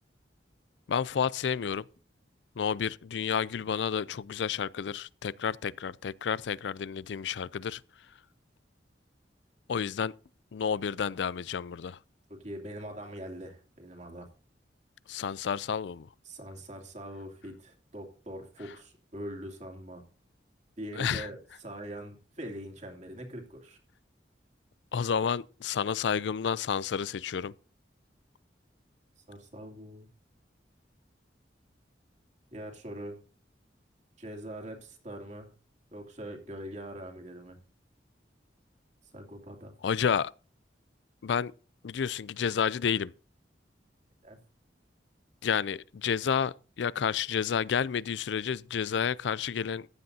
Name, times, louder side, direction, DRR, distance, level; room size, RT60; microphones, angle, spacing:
voice 1, 0.9-1.9 2.6-7.8 9.7-10.1 10.5-12.0 15.1-16.1 20.9-21.3 24.9-27.5 39.8-40.3 41.2-41.5 41.8-43.1 45.4-49.9, left 7 dB, 75° left, 0.4 m, -30 dB
voice 2, 12.3-14.3 16.2-20.0 20.8-23.8 29.3-30.1 32.5-33.2 34.2-35.5 35.9-37.6 39.1-39.7 44.2-44.4, right 1 dB, 40° right, 2.7 m, -42 dB
15.0 x 10.5 x 2.8 m
head